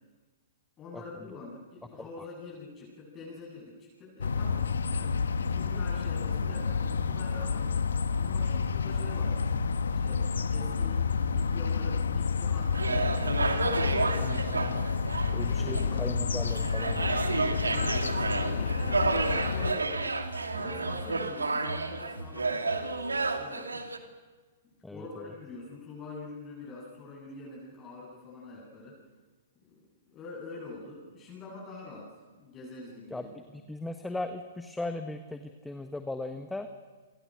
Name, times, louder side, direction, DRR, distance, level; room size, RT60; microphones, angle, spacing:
voice 1, 0.8-7.7 8.1-9.5 10.0-14.2 15.4-16.2 17.6-20.2 20.5-23.9 24.6-29.0 29.7-32.1 32.4-33.3, left 3 dB, 25° left, -4 dB, 8.0 m, -45 dB
sound 1, 4.2-19.7, left 5 dB, 75° left, 1.5 m, -29 dB
sound 2, 12.7-24.0, right 3 dB, 85° right, 2.4 m, -31 dB
voice 2, 14.2-14.8 15.3-17.1 17.5-17.6 24.8-25.0 33.1-33.2 33.7-36.7, left 2 dB, 5° left, 7 dB, 1.3 m, -37 dB
29.5 x 24.5 x 6.5 m, 1.3 s
figure-of-eight pair, 115°, 0 cm